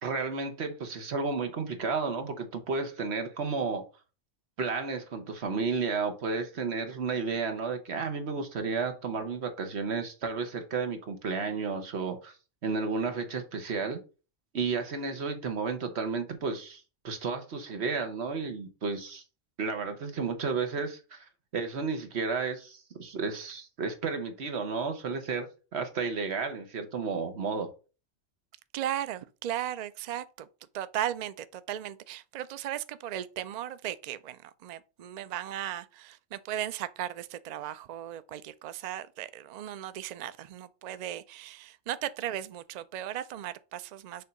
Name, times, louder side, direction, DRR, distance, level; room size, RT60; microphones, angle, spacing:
voice 1, 0.0-3.8 4.6-12.3 12.6-14.0 14.5-19.2 19.6-21.3 21.5-27.7, right 4 dB, 60° right, 1.3 m, -32 dB
voice 2, 28.7-30.5 30.7-44.2, right 11 dB, 85° right, 0.3 m, -36 dB
6.7 x 2.7 x 5.1 m
omnidirectional pair, 1.3 m